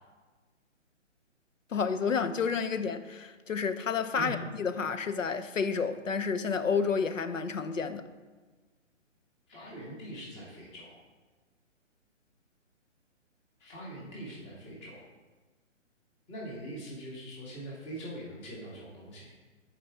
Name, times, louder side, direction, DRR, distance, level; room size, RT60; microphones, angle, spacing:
voice 1, 1.7-8.0, left 5 dB, 85° left, 0.8 m, -30 dB
voice 2, 9.5-11.0 13.6-15.0 16.3-19.3, right 1 dB, 15° left, 1.7 m, -42 dB
13.0 x 5.0 x 3.6 m
figure-of-eight pair, 140°, 38 cm